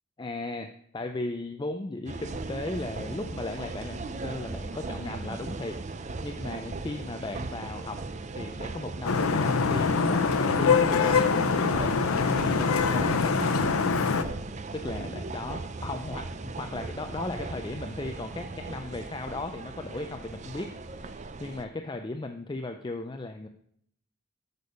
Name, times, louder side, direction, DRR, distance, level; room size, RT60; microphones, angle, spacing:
voice 1, 0.2-5.8 6.2-8.0 8.4-11.3 11.5-14.0 14.7-23.5, left 2 dB, 20° left, 6 dB, 0.4 m, -36 dB
sound 1, 2.0-21.6, right 3 dB, 35° right, 0.5 m, -38 dB
Vehicle horn car horn honking / Traffic noise roadway noise, 9.0-14.2, left 5 dB, 80° left, 0.7 m, -24 dB
8.2 x 6.7 x 5.3 m, 0.68 s
head